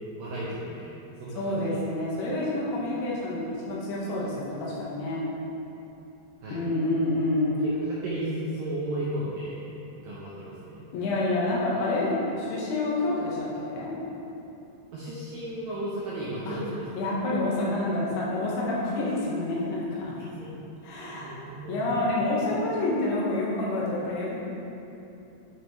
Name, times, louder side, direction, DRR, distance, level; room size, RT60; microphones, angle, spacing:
voice 1, 0.2-0.9 1.2-1.8 6.4-6.7 7.6-9.5 10.0-10.8 14.9-16.8 20.2-20.5 20.9-22.0, right 1 dB, 80° right, -7 dB, 2.0 m, -34 dB
voice 2, 1.4-5.2 6.5-7.6 10.9-13.9 16.5-16.6 16.9-20.1 20.8-21.4 21.7-24.4, left 2 dB, 90° left, -6 dB, 3.7 m, -28 dB
10.5 x 6.2 x 3.2 m, 2.9 s
omnidirectional pair, 5.2 m